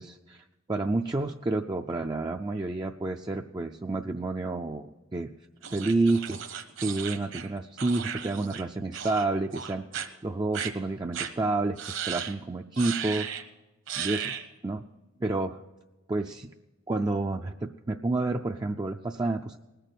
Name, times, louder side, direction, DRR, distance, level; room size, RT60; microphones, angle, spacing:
voice 1, 0.0-5.3 5.7-9.9 10.2-13.3 14.0-14.4 14.6-14.9 15.2-15.6 16.1-16.5 16.9-19.6, right 2 dB, 20° right, 3 dB, 0.4 m, -29 dB
sound 1, 5.6-8.6 8.9-9.3 9.5-10.1 10.5-10.7 11.1-11.3 11.8-12.3 12.8-13.4 13.9-14.5, right 8 dB, 65° right, 1.2 m, -35 dB
19.5 x 6.7 x 7.9 m, 1.1 s
head